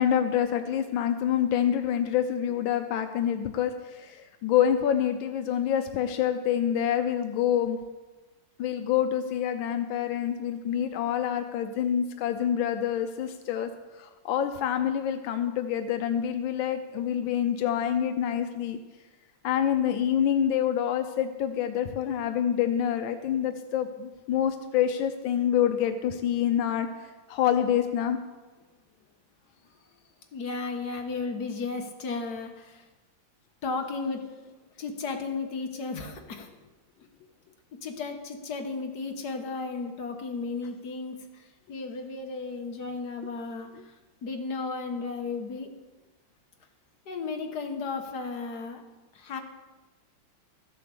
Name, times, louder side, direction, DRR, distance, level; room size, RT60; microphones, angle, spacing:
voice 1, 0.0-7.8 8.6-18.8 19.4-28.2, left 9 dB, 90° left, 7 dB, 1.5 m, -27 dB
voice 2, 30.3-32.9 33.6-34.4 34.8-36.5 37.7-44.0 44.2-45.7 47.1-48.9 49.1-49.4, left 4 dB, 60° left, 4 dB, 1.7 m, -34 dB
14.5 x 7.6 x 6.9 m, 1.2 s
omnidirectional pair, 2.1 m